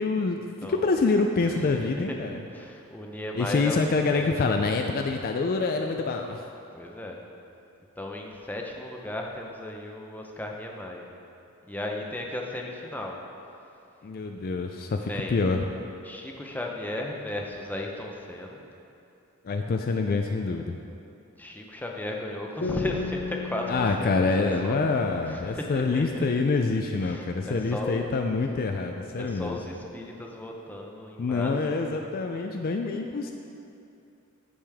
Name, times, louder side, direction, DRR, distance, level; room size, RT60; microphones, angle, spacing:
voice 1, 0.0-2.4 3.3-6.4 14.0-15.7 19.4-20.7 23.7-29.6 31.2-33.3, left 3 dB, 40° left, 4 dB, 0.3 m, -26 dB
voice 2, 1.4-2.2 2.5-3.8 4.1-4.3 6.7-7.2 8.0-11.0 11.7-13.2 15.1-15.4 16.0-18.6 21.4-24.8 25.3-26.3 27.0-28.1 29.2-31.5 31.9-32.1, left 1 dB, 10° left, 0 dB, 0.7 m, -35 dB
sound 1, 22.6-26.1, left 4 dB, 70° left, 1.4 m, -36 dB
14.5 x 5.0 x 3.5 m, 2.6 s
head